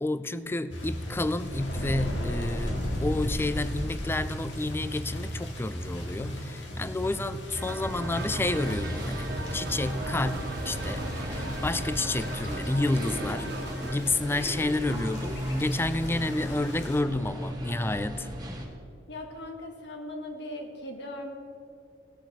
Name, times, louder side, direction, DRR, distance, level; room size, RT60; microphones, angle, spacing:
voice 1, 0.0-13.5 13.8-18.3, left 2 dB, 15° left, 14 dB, 0.4 m, -30 dB
sound 1, 0.7-17.0, equal, 85° left, 2.2 m, -36 dB
sound 2, 7.5-14.0, right 2 dB, 65° right, 1.4 m, -39 dB
sound 3, 7.9-18.7, equal, 20° right, 2.0 m, -36 dB
voice 2, 19.1-21.4, left 1 dB, 70° left, 3 dB, 1.4 m, -39 dB
17.5 x 6.7 x 6.1 m, 2.4 s
head